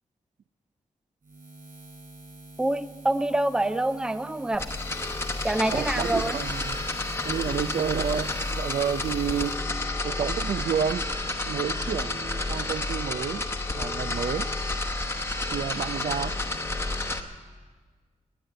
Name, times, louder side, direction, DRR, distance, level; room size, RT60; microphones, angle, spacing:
Buzz, 1.2-9.5, right 2 dB, 90° right, 5.7 m, -47 dB
voice 1, 2.6-4.7 5.4-6.4, right 1 dB, 5° right, 13 dB, 0.4 m, -26 dB
sound 1, 4.5-17.2, left 2 dB, 20° left, 0.9 m, -30 dB
voice 2, 5.7-6.8 7.2-9.5 10.0-11.0 11.4-13.4 13.8-14.5 15.5-16.4, right 8 dB, 65° right, 14 dB, 0.5 m, -30 dB
19.0 x 9.7 x 7.7 m, 1.5 s
wide cardioid pair, 175°, 13 cm